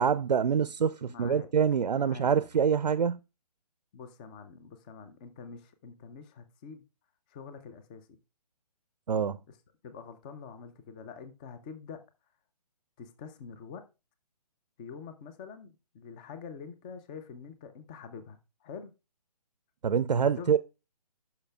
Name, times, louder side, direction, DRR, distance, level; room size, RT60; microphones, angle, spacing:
voice 1, 0.0-3.2 9.1-9.4 19.8-20.6, right 7 dB, 80° right, 0.4 m, -26 dB
voice 2, 1.1-1.5 1.9-2.3 3.9-6.9 7.3-8.2 9.8-12.0 13.0-13.8 14.8-18.9 20.2-20.6, left 6 dB, 10° left, 0.4 m, -46 dB
11.5 x 5.6 x 2.2 m
figure-of-eight pair, 140°, 21 cm